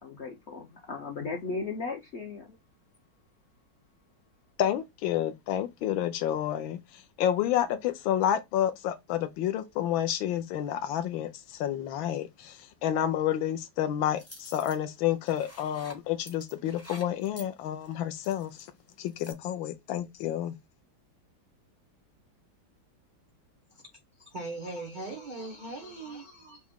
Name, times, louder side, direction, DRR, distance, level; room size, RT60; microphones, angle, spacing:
voice 1, 0.0-2.6, left 4 dB, 65° left, 0.6 m, -36 dB
voice 2, 4.6-6.8 7.2-18.6 19.0-20.5, left 11 dB, 80° left, 1.4 m, -29 dB
sound 1, 14.2-14.8 15.3-15.9 16.2-18.7 19.1-19.3, left 1 dB, 20° left, 0.4 m, -48 dB
voice 3, 24.3-26.6, right 2 dB, 80° right, 0.4 m, -39 dB
5.9 x 2.1 x 3.6 m
omnidirectional pair, 2.2 m